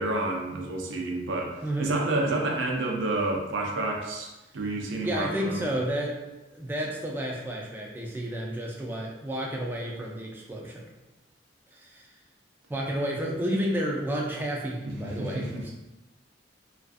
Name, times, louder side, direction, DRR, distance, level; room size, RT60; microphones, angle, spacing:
voice 1, 0.0-5.7 15.0-15.7, right 2 dB, 85° right, 0 dB, 0.5 m, -29 dB
voice 2, 1.6-2.0 5.0-6.2 6.5-10.8 11.7-12.1 12.7-15.7, right 1 dB, 10° right, -2 dB, 0.3 m, -31 dB
2.4 x 2.4 x 2.4 m, 1.0 s
head